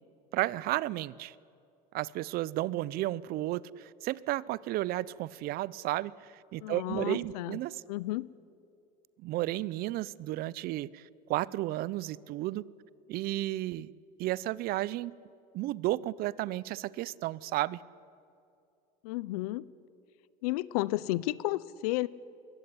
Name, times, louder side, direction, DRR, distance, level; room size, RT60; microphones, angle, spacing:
voice 1, 0.3-1.3 1.9-7.8 9.2-11.0 11.3-12.7 13.1-13.9 14.2-15.2 15.5-17.8, right 16 dB, 55° right, 22 dB, 0.6 m, -33 dB
voice 2, 6.6-7.6 7.9-8.3 19.0-19.6 20.4-22.1, left 18 dB, 80° left, 21 dB, 0.7 m, -32 dB
22.0 x 17.0 x 9.9 m, 2.5 s
supercardioid pair, 105°, 19 cm